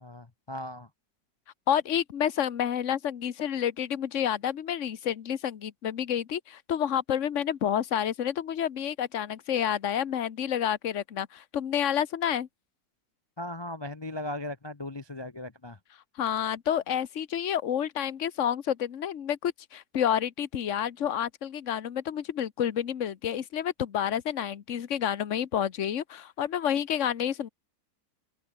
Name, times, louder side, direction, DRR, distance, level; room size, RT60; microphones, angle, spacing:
voice 1, 0.0-0.9 13.4-15.8, left 1 dB, 30° left, 0.5 m, -37 dB
voice 2, 1.7-12.5 16.2-27.5, left 9 dB, 50° left, 1.3 m, -29 dB
omnidirectional pair, 1.7 m